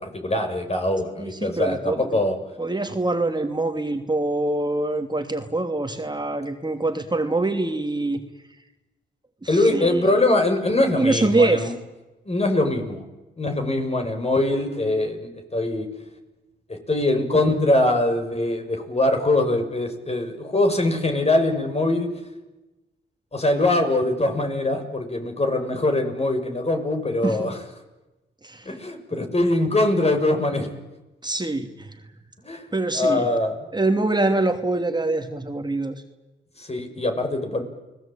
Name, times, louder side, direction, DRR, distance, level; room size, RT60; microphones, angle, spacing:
voice 1, 0.0-2.4 9.5-11.7 12.2-13.1 13.4-15.9 16.7-22.1 23.3-27.6 28.6-30.7 32.4-33.5 36.6-37.6, left 2 dB, 30° left, 5 dB, 6.5 m, -22 dB
voice 2, 1.2-2.0 2.6-8.2 9.4-10.0 10.9-11.7 27.2-27.5 28.4-28.7 31.2-31.9 32.7-33.3 33.7-35.9, right 2 dB, 20° right, 5 dB, 2.9 m, -24 dB
30.0 x 20.0 x 9.1 m, 1.1 s
cardioid pair, 60°, 20 cm